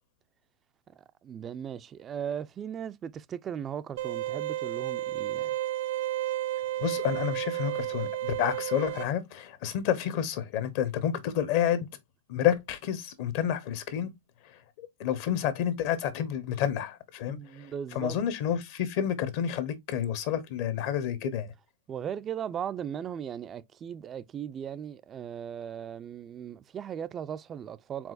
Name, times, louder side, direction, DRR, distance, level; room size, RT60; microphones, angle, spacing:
voice 1, 1.2-5.5 17.3-18.2 21.9-28.1, right 8 dB, 25° right, 0.3 m, -37 dB
sound 1, 4.0-9.0, right 14 dB, 70° right, 0.7 m, -32 dB
voice 2, 6.8-11.9 12.3-14.1 14.4-21.5, left 9 dB, 50° left, 0.9 m, -30 dB
4.7 x 3.7 x 2.5 m
hypercardioid pair, 130°, 0 cm